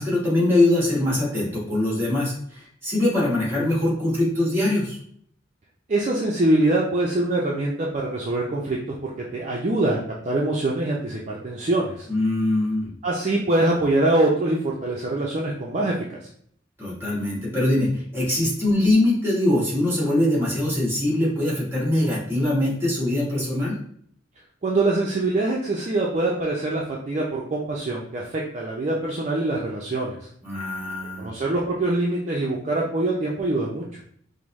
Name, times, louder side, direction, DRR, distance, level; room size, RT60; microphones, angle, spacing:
voice 1, 0.0-5.0 12.1-12.9 16.8-23.8 30.4-31.3, left 1 dB, 10° right, -6 dB, 1.5 m, -22 dB
voice 2, 5.9-8.8 9.0-10.0 10.2-12.1 13.0-16.2 24.6-30.2 31.2-33.9, right 2 dB, 35° right, -3 dB, 0.4 m, -24 dB
5.0 x 2.0 x 3.0 m, 0.63 s
head